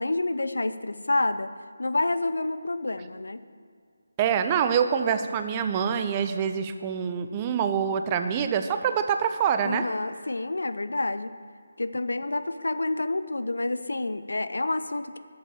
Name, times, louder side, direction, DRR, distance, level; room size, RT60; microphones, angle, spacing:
voice 1, 0.0-1.5 1.8-3.4 9.6-11.3 11.8-15.2, left 2 dB, 70° left, 12 dB, 0.5 m, -28 dB
voice 2, 4.2-9.9, right 7 dB, 20° right, 8 dB, 0.5 m, -25 dB
10.0 x 7.3 x 7.2 m, 2.1 s
figure-of-eight pair, 155°, 0 cm